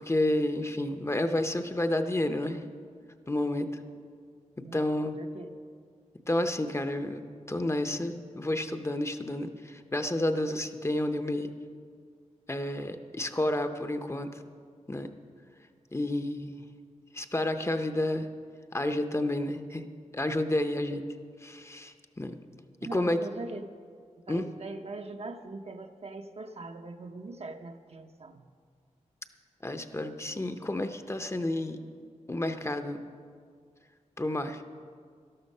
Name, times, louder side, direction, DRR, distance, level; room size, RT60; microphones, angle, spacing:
voice 1, 0.0-2.7 3.3-3.7 4.7-5.2 6.3-7.2 7.5-11.5 12.5-14.3 14.9-15.1 15.9-16.6 17.1-18.3 18.7-19.8 20.1-21.0 21.4-22.3 22.9-23.2 24.3-24.5 29.6-31.8 32.3-33.0 34.2-34.6, left 1 dB, 20° left, 8 dB, 0.7 m, -30 dB
voice 2, 4.6-5.5 22.8-23.7 24.3-28.4, right 3 dB, 55° right, 5 dB, 0.8 m, -41 dB
12.5 x 12.0 x 5.5 m, 2.1 s
wide cardioid pair, 75°, 13 cm